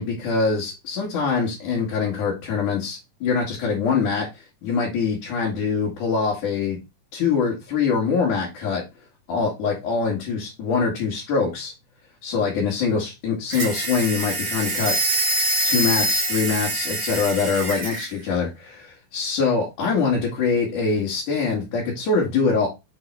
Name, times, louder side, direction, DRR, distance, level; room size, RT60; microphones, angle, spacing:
voice 1, 0.0-6.8 7.1-8.8 9.3-11.7 12.2-14.9 15.6-22.7, left 5 dB, 80° left, -3 dB, 3.7 m, -24 dB
sound 1, 13.5-18.1, right 2 dB, 25° right, 1.8 m, -25 dB
7.7 x 4.0 x 4.6 m, 0.23 s
omnidirectional pair, 3.5 m